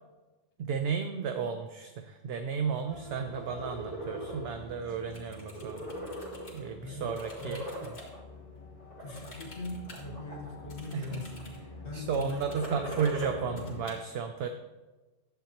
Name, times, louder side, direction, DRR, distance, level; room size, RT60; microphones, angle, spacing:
voice 1, 0.6-5.9 6.5-7.6 10.9-11.2 11.9-14.5, right 6 dB, 65° right, 7 dB, 0.7 m, -33 dB
sound 1, 2.9-13.8, left 1 dB, 30° left, 1.1 m, -46 dB
sound 2, 3.4-4.4 4.9-5.1 5.4-6.7 7.0-8.2 8.8-9.3 9.9-10.6 10.9-11.4 12.3-13.6, right 1 dB, 45° right, 2.2 m, -40 dB
sound 3, 5.1-6.6 7.1-8.1 9.2-10.1 10.7-11.6 12.1-13.2 13.6-13.9, left 2 dB, 55° left, 2.0 m, -52 dB
voice 2, 6.8-8.0 9.0-11.5 11.8-12.9, left 2 dB, 80° left, -1 dB, 1.6 m, -41 dB
10.5 x 7.7 x 2.9 m, 1.2 s
omnidirectional pair, 1.3 m